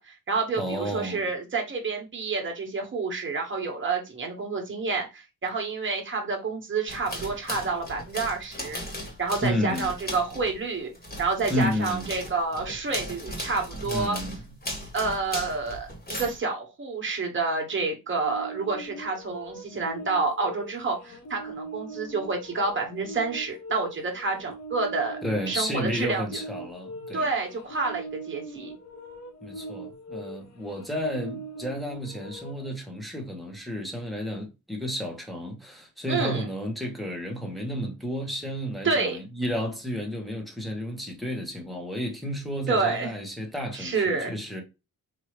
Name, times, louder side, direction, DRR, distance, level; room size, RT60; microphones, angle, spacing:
voice 1, 0.0-8.8 9.2-10.9 11.2-14.2 14.9-25.2 25.5-26.2 27.1-28.7 36.1-36.4 38.8-39.2 42.7-43.1 43.7-44.3, right 4 dB, 35° right, 1.4 m, -29 dB
voice 2, 0.6-1.2 9.4-9.9 11.5-12.1 13.8-14.4 25.2-27.3 29.4-44.6, equal, ahead, 1.2 m, -32 dB
sound 1, 6.9-10.6 10.9-16.4, equal, 25° left, 1.7 m, -37 dB
sound 2, 18.2-32.7, right 2 dB, 50° left, 0.9 m, -41 dB
4.5 x 2.8 x 3.2 m
wide cardioid pair, 150°, 35 cm